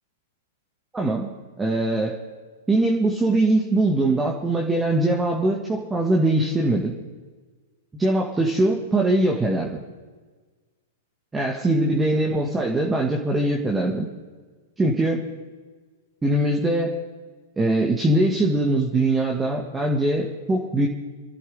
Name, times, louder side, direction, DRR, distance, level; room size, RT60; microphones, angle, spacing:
voice 1, 0.9-1.3 1.6-2.2 2.7-6.9 8.0-9.7 11.3-14.1 14.8-15.3 16.2-17.0 17.6-20.9, right 1 dB, 10° right, -1 dB, 2.0 m, -22 dB
28.5 x 12.5 x 3.6 m, 1.4 s
figure-of-eight pair, 100°, 0 cm